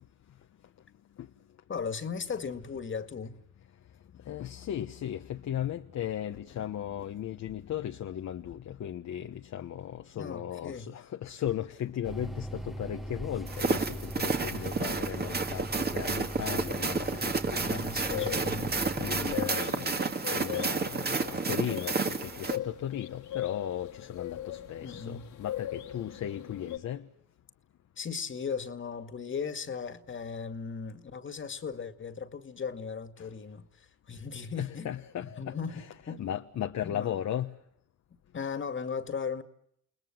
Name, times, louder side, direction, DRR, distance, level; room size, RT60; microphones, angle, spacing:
voice 1, 1.7-3.4 10.1-10.9 14.4-14.7 17.6-18.8 24.8-25.3 28.0-34.9 35.2-36.2 36.8-37.2 38.3-39.4, left 5 dB, 40° left, 2.2 m, -37 dB
voice 2, 4.2-18.4 19.0-27.1 33.2-33.3 34.6-35.6 36.2-37.5, left 10 dB, 65° left, 1.2 m, -36 dB
sound 1, 12.0-19.5, right 1 dB, ahead, 1.3 m, -40 dB
sound 2, 13.5-22.6, right 4 dB, 30° right, 2.1 m, -31 dB
sound 3, 18.0-26.8, left 12 dB, 85° left, 2.8 m, -39 dB
30.0 x 20.0 x 7.4 m
cardioid pair, 90°, 30 cm